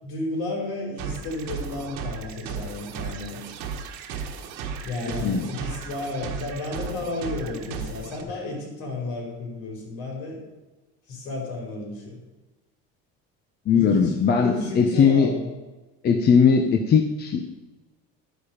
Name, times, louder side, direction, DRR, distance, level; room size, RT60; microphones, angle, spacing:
voice 1, 0.0-3.4 4.8-10.4 11.1-12.2 13.7-15.5, left 2 dB, 70° left, 0 dB, 5.1 m, -32 dB
sound 1, 1.0-8.2, right 6 dB, 75° right, 1.7 m, -35 dB
voice 2, 5.0-5.5 13.7-15.3 16.0-17.5, left 6 dB, 30° left, 4 dB, 1.0 m, -19 dB
12.5 x 9.3 x 5.1 m, 1.1 s
cardioid pair, 150°, 31 cm